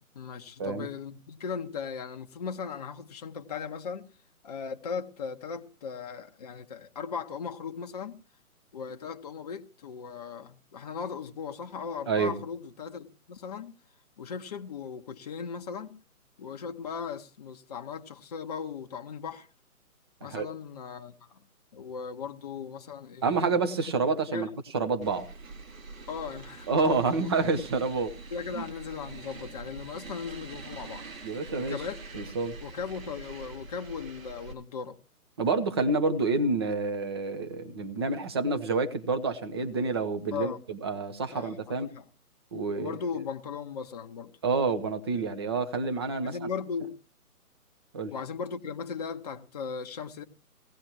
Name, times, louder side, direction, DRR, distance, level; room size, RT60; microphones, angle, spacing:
voice 1, 0.1-4.1 4.4-8.2 8.7-13.7 14.2-15.9 16.4-19.5 20.2-21.4 21.7-23.5 24.3-24.5 26.1-27.3 28.3-31.1 31.6-32.0 32.6-35.0 40.3-40.6 41.3-42.1 42.7-44.3 46.2-47.0 48.1-50.2, left 6 dB, 25° left, 0.8 m, -38 dB
voice 2, 12.1-12.4 20.3-20.5 23.2-24.5 24.7-25.3 26.7-28.1 28.6-28.7 31.2-31.8 32.1-32.5 35.4-41.9 42.5-43.0 44.4-46.5 47.9-48.1, right 3 dB, 15° right, 0.7 m, -28 dB
sound 1, 25.0-34.5, right 4 dB, 60° right, 3.1 m, -44 dB
20.0 x 16.5 x 2.9 m
figure-of-eight pair, 140°, 45 cm